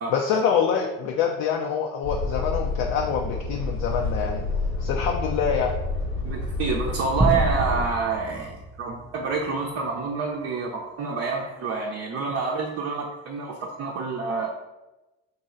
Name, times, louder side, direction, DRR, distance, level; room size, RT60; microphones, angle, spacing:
voice 1, 0.1-4.4 4.8-5.7, left 7 dB, 65° left, 1 dB, 0.5 m, -25 dB
sound 1, 2.0-7.8, left 3 dB, 90° left, 1.4 m, -29 dB
voice 2, 6.2-14.5, right 4 dB, 45° right, -1 dB, 0.7 m, -28 dB
sound 2, 7.2-9.8, right 3 dB, 10° right, 0.4 m, -29 dB
3.0 x 2.6 x 3.8 m, 1.0 s
hypercardioid pair, 60°, 31 cm